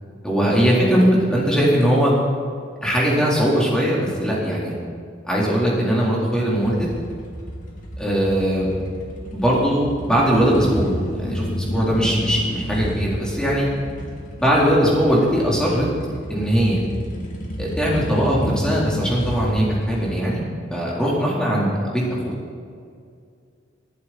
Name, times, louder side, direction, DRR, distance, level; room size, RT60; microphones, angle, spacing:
voice 1, 0.2-2.1 2.8-4.7 5.3-6.9 8.0-8.7 9.3-10.9 11.2-13.7 14.4-15.9 16.3-16.8 17.6-20.4 20.7-22.3, equal, 5° left, -5 dB, 4.0 m, -20 dB
sound 1, 6.6-20.2, equal, 45° left, 2.4 m, -31 dB
21.5 x 11.0 x 4.4 m, 2.3 s
head